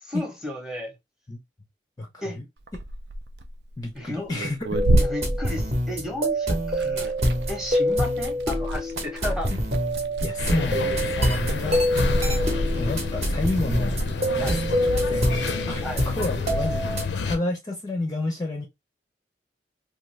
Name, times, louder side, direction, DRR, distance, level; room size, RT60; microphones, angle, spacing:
voice 1, 0.0-0.9 2.2-2.4 3.9-4.3 5.0-7.1 7.5-9.5 14.4-14.6 15.8-16.0, left 1 dB, 5° right, 0.8 m, -33 dB
voice 2, 2.0-2.5 3.8-4.8 10.2-11.8 12.8-14.0 14.3-15.4 15.7-16.9 17.2-18.7, left 2 dB, 20° left, 0.5 m, -30 dB
Liquid, 2.6-6.3 6.6-14.1, right 1 dB, 70° right, 0.4 m, -30 dB
sound 1, 4.7-17.0, equal, 40° right, 0.8 m, -26 dB
sound 2, 10.4-17.4, left 3 dB, 80° left, 0.5 m, -28 dB
2.5 x 2.5 x 3.1 m
head